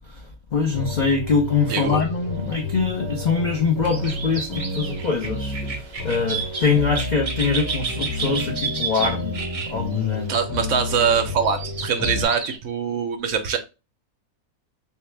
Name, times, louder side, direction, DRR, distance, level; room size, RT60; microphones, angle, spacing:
voice 1, 0.5-10.3, left 5 dB, 65° left, 0.4 m, -23 dB
sound 1, 0.7-12.2, left 3 dB, 15° left, 1.3 m, -31 dB
sound 2, 1.5-2.5 3.8-12.6, right 4 dB, 50° right, 0.4 m, -32 dB
voice 2, 1.7-2.0 10.3-13.6, right 6 dB, 65° right, 0.9 m, -23 dB
3.3 x 2.7 x 3.2 m
omnidirectional pair, 1.5 m